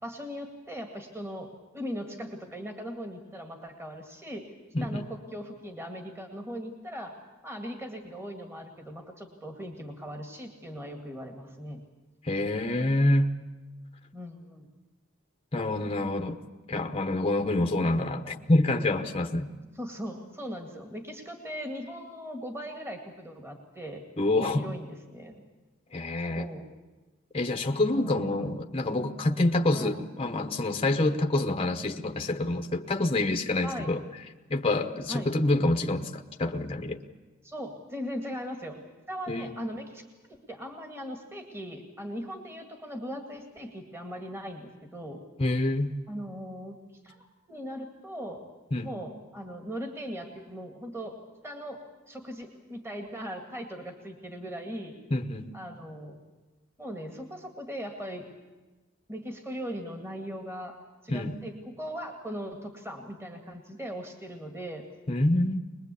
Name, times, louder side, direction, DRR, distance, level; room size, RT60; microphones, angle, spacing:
voice 1, 0.0-1.5 1.7-4.5 4.8-11.8 14.1-14.7 19.7-24.0 24.4-25.4 26.2-26.7 28.0-28.4 29.7-30.0 33.6-33.9 35.1-35.4 37.4-38.8 39.1-40.0 40.3-45.2 46.1-46.8 47.0-48.4 48.8-51.1 51.4-55.0 55.5-56.2 56.8-58.3 59.1-60.7 61.0-64.8, equal, 15° right, 4 dB, 2.0 m, -39 dB
voice 2, 4.7-5.1 12.2-13.3 15.5-16.4 16.7-19.5 24.2-24.7 25.9-26.5 27.3-34.0 34.5-37.0 39.3-39.5 45.4-46.0 48.7-49.0 55.1-55.6 61.1-61.4 65.1-65.6, left 2 dB, 30° left, 5 dB, 0.9 m, -27 dB
22.5 x 21.0 x 8.4 m, 1.2 s
head